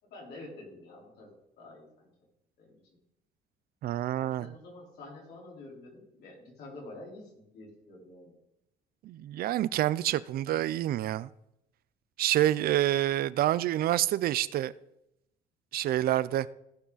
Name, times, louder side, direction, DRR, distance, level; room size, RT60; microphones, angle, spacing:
voice 1, 0.0-2.1 2.6-2.8 4.1-8.3, left 2 dB, 75° left, 4.6 m, -48 dB
voice 2, 3.8-4.5 9.0-11.3 12.2-14.7 15.7-16.5, right 13 dB, 65° right, 0.5 m, -27 dB
17.5 x 6.0 x 4.1 m
cardioid pair, 110°, 17 cm